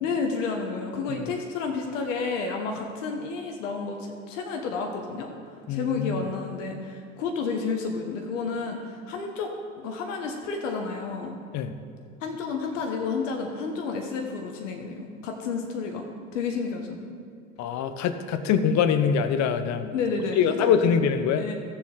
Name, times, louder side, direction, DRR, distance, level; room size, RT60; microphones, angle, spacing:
voice 1, 0.0-5.3 5.7-11.3 12.2-16.1 16.3-17.0 18.5-18.6 19.9-20.9 21.4-21.5, left 4 dB, 70° left, 3 dB, 1.2 m, -31 dB
voice 2, 5.7-6.2 11.5-11.7 17.6-19.9 20.4-21.4, left 7 dB, 45° left, 10 dB, 0.9 m, -24 dB
15.5 x 7.1 x 3.7 m, 2.2 s
hypercardioid pair, 70°, 38 cm